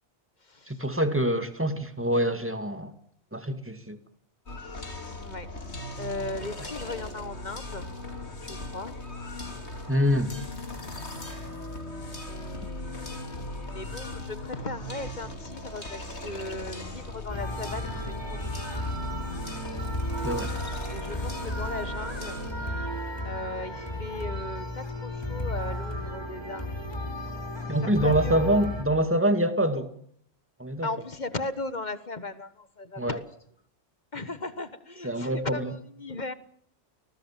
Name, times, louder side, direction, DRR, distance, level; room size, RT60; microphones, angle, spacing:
voice 1, 0.7-2.9 3.3-4.0 9.9-10.3 20.2-20.5 27.7-29.9 30.6-30.9 33.0-33.2 35.0-35.7, right 1 dB, 10° right, 9 dB, 2.3 m, -25 dB
sound 1, 4.5-22.5, left 1 dB, 70° left, 3.5 m, -38 dB
voice 2, 6.0-7.9 8.4-8.9 12.3-18.5 20.9-22.4 23.2-26.7 27.8-28.4 30.8-33.2 34.1-36.3, left 3 dB, 40° left, 13 dB, 1.6 m, -37 dB
sound 2, 17.3-28.8, equal, 20° left, 4.3 m, -34 dB
30.0 x 20.0 x 7.5 m, 0.67 s
omnidirectional pair, 1.2 m